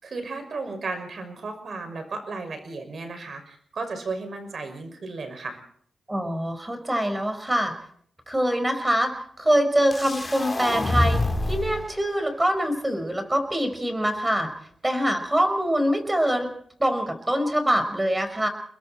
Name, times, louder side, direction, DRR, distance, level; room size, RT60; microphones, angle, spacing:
voice 1, 0.0-5.6, right 3 dB, 55° right, 7 dB, 6.1 m, -34 dB
voice 2, 6.1-7.7 8.3-11.2 11.5-14.5 14.8-18.5, equal, 15° right, 7 dB, 5.1 m, -24 dB
sound 1, 9.9-11.9, left 2 dB, 25° left, 4.0 m, -26 dB
30.0 x 21.0 x 4.4 m, 0.63 s
cardioid pair, 75°, 0 cm